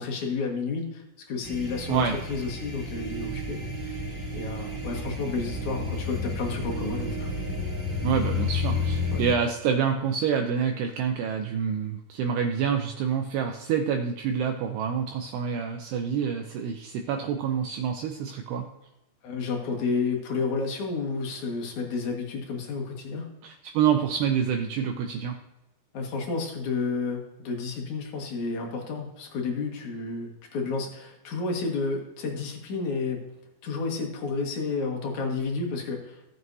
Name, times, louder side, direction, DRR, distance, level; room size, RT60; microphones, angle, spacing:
voice 1, 0.0-4.0 4.3-7.3 9.1-9.2 19.2-23.3 25.9-33.3 33.6-36.2, left 4 dB, 55° left, 1 dB, 2.3 m, -31 dB
sound 1, 1.4-9.3, left 3 dB, 15° right, 3.8 m, -31 dB
voice 2, 8.0-18.7 23.4-25.4, right 7 dB, 80° right, 4 dB, 2.4 m, -27 dB
17.0 x 7.8 x 2.7 m, 0.95 s
omnidirectional pair, 5.5 m